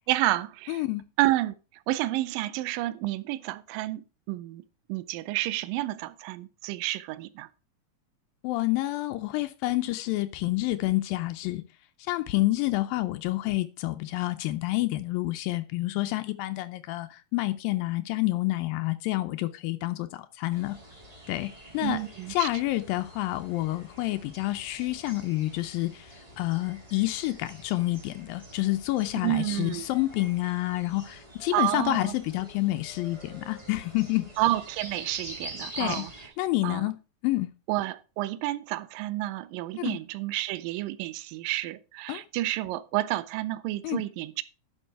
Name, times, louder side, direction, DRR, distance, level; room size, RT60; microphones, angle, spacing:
voice 1, 0.1-0.8 1.2-1.5 1.9-4.6 4.9-7.5 21.8-22.5 29.2-29.9 31.5-32.1 34.4-36.1 36.6-36.9 37.7-44.4, right 16 dB, 80° right, 2.3 m, -30 dB
voice 2, 0.7-1.1 8.4-11.6 12.0-20.8 21.3-22.0 22.3-34.3 35.8-36.0 36.4-37.0 37.2-37.5 39.8-40.0 42.1-42.2 43.8-44.0, left 18 dB, 85° left, 2.3 m, -28 dB
sound 1, 20.5-36.3, right 1 dB, 15° right, 1.3 m, -46 dB
11.0 x 6.2 x 4.5 m
omnidirectional pair, 4.0 m